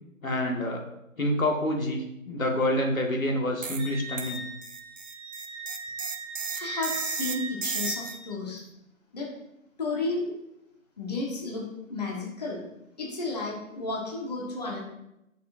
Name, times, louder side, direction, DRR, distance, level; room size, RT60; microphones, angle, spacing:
voice 1, 0.2-0.8 1.2-4.4, left 1 dB, 75° left, 1 dB, 1.9 m, -27 dB
sound 1, 3.6-3.9 4.2-8.2, right 6 dB, 65° right, 0.7 m, -34 dB
Wind instrument woodwind instrument, 3.8-8.2, right 3 dB, 10° right, 1.3 m, -39 dB
voice 2, 6.5-8.6 9.1-9.3 9.8-10.3 11.0-12.6 13.0-14.8, left 3 dB, 30° left, -3 dB, 1.6 m, -32 dB
11.5 x 6.7 x 2.7 m, 0.84 s
figure-of-eight pair, 165°, 41 cm